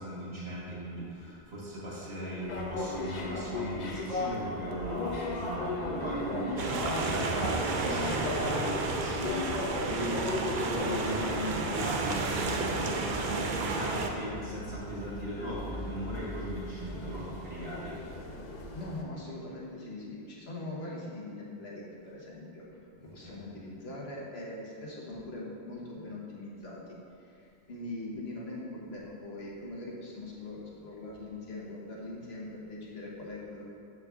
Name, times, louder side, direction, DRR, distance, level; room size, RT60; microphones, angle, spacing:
voice 1, 0.0-18.0 22.9-23.4, equal, 80° right, -7 dB, 2.1 m, -38 dB
sound 1, 2.4-19.0, left 3 dB, 50° left, 0.7 m, -37 dB
sound 2, 6.6-14.1, right 4 dB, 55° right, 0.6 m, -32 dB
voice 2, 18.7-22.6 23.1-33.7, left 2 dB, 75° left, -4 dB, 1.4 m, -42 dB
7.2 x 4.7 x 3.6 m, 2.5 s
omnidirectional pair, 1.1 m